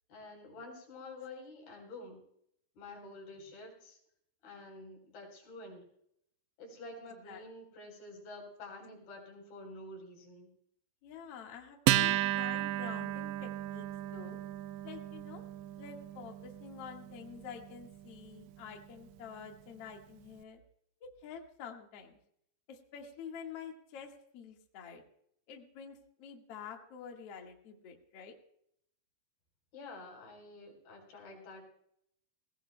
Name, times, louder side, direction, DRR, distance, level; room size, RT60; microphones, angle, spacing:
voice 1, 0.1-2.2 2.8-4.0 4.4-5.8 6.6-10.5 29.7-31.7, left 2 dB, 55° left, 1 dB, 5.6 m, -49 dB
voice 2, 11.0-14.4 14.8-15.4 15.8-20.6 21.0-22.2 22.7-25.0 25.5-28.3, left 7 dB, 80° left, 2 dB, 1.3 m, -48 dB
Acoustic guitar, 11.9-18.7, right 15 dB, 80° right, 2.6 m, -34 dB
20.5 x 18.0 x 2.2 m, 0.70 s
omnidirectional pair, 5.5 m